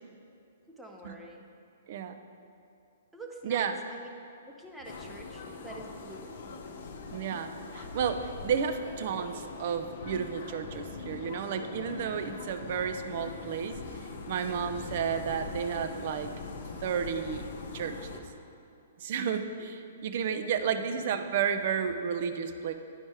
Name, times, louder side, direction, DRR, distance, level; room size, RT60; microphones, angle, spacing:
voice 1, 0.7-1.4 3.1-4.1 4.4-6.5 20.7-20.9, right 2 dB, 5° right, 0 dB, 0.7 m, -47 dB
sound 1, 4.8-18.2, left 4 dB, 50° left, 0.7 m, -42 dB
voice 2, 7.1-13.8 14.3-16.3 16.8-17.4 17.7-18.2 19.0-22.7, right 7 dB, 45° right, 8 dB, 0.5 m, -32 dB
9.9 x 5.3 x 4.6 m, 2.6 s
figure-of-eight pair, 115°, 0 cm